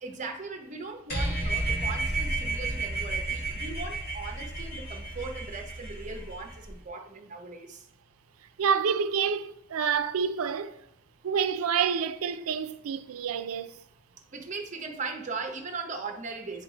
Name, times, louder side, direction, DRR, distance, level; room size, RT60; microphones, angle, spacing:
voice 1, 0.0-7.8 14.3-16.6, right 4 dB, 35° right, 0.7 m, -38 dB
sound 1, 1.1-6.7, right 2 dB, 50° left, 1.5 m, -32 dB
voice 2, 8.6-10.8 11.2-13.8, right 6 dB, 85° right, 0.4 m, -28 dB
9.5 x 3.3 x 3.8 m
head